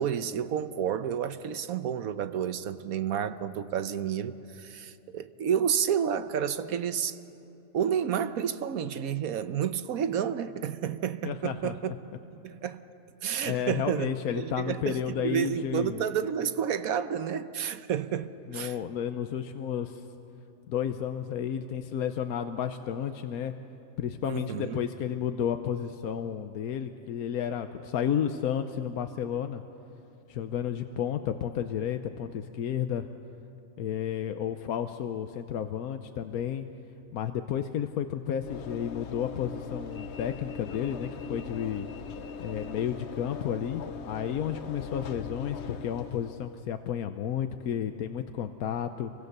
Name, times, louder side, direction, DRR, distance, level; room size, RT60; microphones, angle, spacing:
voice 1, 0.0-7.2 7.7-11.9 12.3-12.8 13.2-18.8 24.2-24.8, right 8 dB, 80° right, 1.3 m, -30 dB
voice 2, 11.2-11.7 13.4-16.0 18.5-20.0 20.7-23.5 24.0-29.6 30.3-33.1 33.8-36.7 37.1-41.9 42.4-49.1, left 9 dB, 90° left, 1.3 m, -32 dB
Train / Engine / Alarm, 38.4-46.7, left 5 dB, 55° left, 1.0 m, -40 dB
28.5 x 24.0 x 6.7 m
omnidirectional pair, 1.5 m